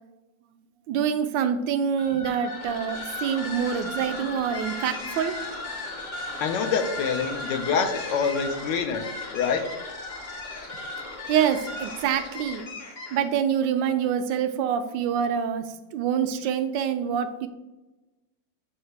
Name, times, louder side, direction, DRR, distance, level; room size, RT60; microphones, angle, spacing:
voice 1, 0.9-5.4 11.3-12.6 13.1-15.7 15.9-17.5, right 8 dB, 80° right, 9 dB, 1.2 m, -26 dB
sound 1, 1.9-13.4, left 2 dB, 45° left, 0.6 m, -36 dB
voice 2, 6.4-9.0 9.3-9.6, left 6 dB, 75° left, 6 dB, 1.3 m, -26 dB
7.4 x 2.8 x 4.6 m, 1.1 s
omnidirectional pair, 2.0 m